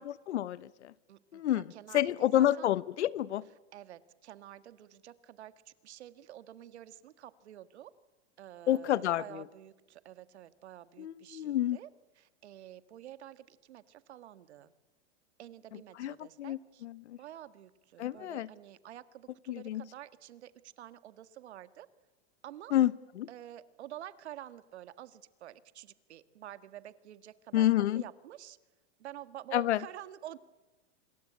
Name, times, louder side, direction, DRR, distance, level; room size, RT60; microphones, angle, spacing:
voice 1, 0.0-0.9 1.3-3.5 8.7-9.4 11.0-11.8 16.0-17.2 18.0-18.5 19.5-19.8 22.7-23.3 27.5-28.0 29.5-29.8, left 12 dB, 85° left, 19 dB, 1.1 m, -29 dB
voice 2, 1.1-2.7 3.7-7.9 8.4-11.9 12.2-14.7 15.4-16.8 17.2-21.9 22.4-22.7 23.3-27.7 27.9-28.6 29.0-30.4, right 12 dB, 75° right, 13 dB, 1.7 m, -49 dB
26.5 x 22.5 x 8.6 m, 1.2 s
supercardioid pair, 165°, 34 cm